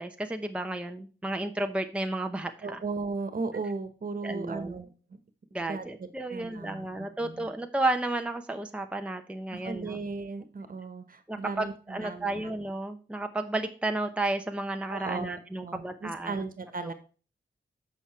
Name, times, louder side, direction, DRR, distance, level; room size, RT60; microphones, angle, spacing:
voice 1, 0.0-2.8 4.2-4.8 5.5-10.0 11.3-16.3 16.8-16.9, right 2 dB, 5° right, 5 dB, 0.8 m, -32 dB
voice 2, 2.6-4.9 5.7-7.5 9.5-12.5 14.9-16.9, right 4 dB, 50° right, 10 dB, 1.3 m, -36 dB
8.0 x 6.0 x 4.4 m, 0.37 s
wide cardioid pair, 90°, 18 cm